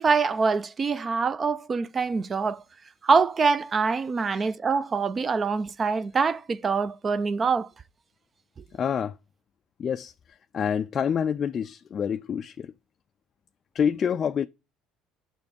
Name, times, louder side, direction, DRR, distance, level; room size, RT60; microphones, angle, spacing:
voice 1, 0.0-2.6 3.0-7.7, right 4 dB, 30° right, 0.5 m, -24 dB
voice 2, 8.7-9.2 9.8-10.1 10.5-12.7 13.7-14.5, left 7 dB, 40° left, 0.3 m, -27 dB
6.9 x 5.8 x 5.1 m
supercardioid pair, 100°, 0 cm